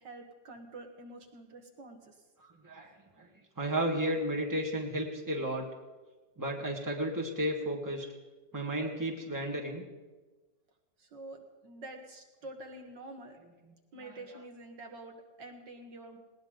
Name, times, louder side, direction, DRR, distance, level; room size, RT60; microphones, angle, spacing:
voice 1, 0.0-2.2 11.0-13.4 13.9-16.2, right 2 dB, 70° right, 3 dB, 2.3 m, -47 dB
voice 2, 3.6-5.7 6.4-8.1 8.5-9.8, right 1 dB, 10° right, 0 dB, 1.8 m, -33 dB
19.5 x 19.0 x 3.9 m, 1.2 s
omnidirectional pair, 2.0 m